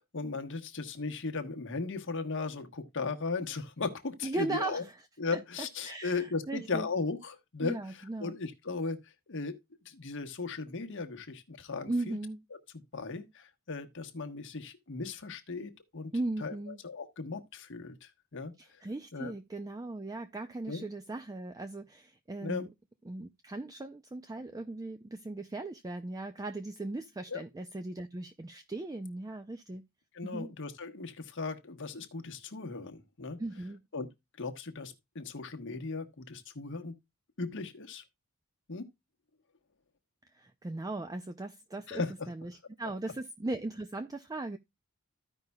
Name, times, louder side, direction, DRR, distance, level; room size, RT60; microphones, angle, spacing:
voice 1, 0.0-4.8 5.2-9.5 9.8-12.2 12.9-16.1 16.4-18.8 19.1-19.3 20.7-20.8 22.4-22.6 27.3-27.4 30.1-33.4 33.9-34.1 34.4-36.9 37.4-38.0 38.7-38.9 41.9-42.3, left 4 dB, 55° left, 1.2 m, -37 dB
voice 2, 4.2-5.0 5.3-6.9 7.6-8.4 11.8-12.4 16.1-16.8 18.6-22.7 23.1-29.8 30.2-30.5 33.4-33.8 40.3-44.6, right 2 dB, 15° right, 0.4 m, -38 dB
14.5 x 5.3 x 2.2 m
head